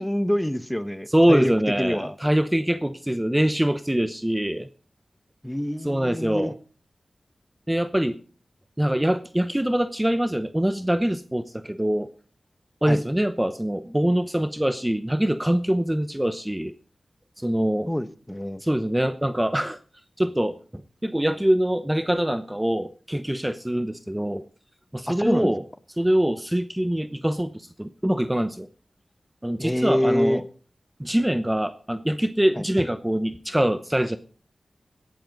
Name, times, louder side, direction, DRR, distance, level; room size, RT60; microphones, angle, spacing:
voice 1, 0.0-2.2 5.4-6.5 12.9-13.0 17.9-18.6 25.1-25.5 29.6-30.4 32.5-32.6, equal, 10° left, 12 dB, 1.1 m, -26 dB
voice 2, 1.1-4.7 5.8-6.5 7.7-8.2 8.8-12.1 12.8-16.7 17.4-17.9 18.6-19.8 20.2-24.4 24.9-25.6 26.0-28.7 29.4-30.4 31.0-34.2, right 1 dB, 10° right, 11 dB, 0.8 m, -24 dB
17.0 x 12.0 x 4.0 m, 0.40 s
cardioid pair, 45°, 0 cm